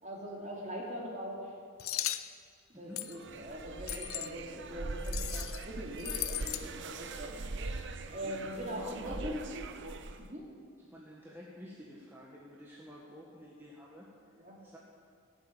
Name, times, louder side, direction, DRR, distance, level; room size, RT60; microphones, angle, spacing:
voice 1, 0.0-1.5 2.7-7.3 7.8-9.4 10.2-10.5 14.4-14.6, equal, 35° right, -2 dB, 3.1 m, -41 dB
sound 1, 1.8-2.3 3.0-3.2 3.9-4.3 5.0-5.6 6.0-6.6, left 14 dB, 80° left, 0.6 m, -36 dB
voice 2, 2.7-3.2 8.2-9.4 10.8-14.1 14.6-14.8, equal, 10° right, -4 dB, 1.5 m, -50 dB
sound 2, 3.1-10.3, right 3 dB, 55° right, 0.8 m, -41 dB
17.5 x 7.8 x 8.9 m, 2.2 s
head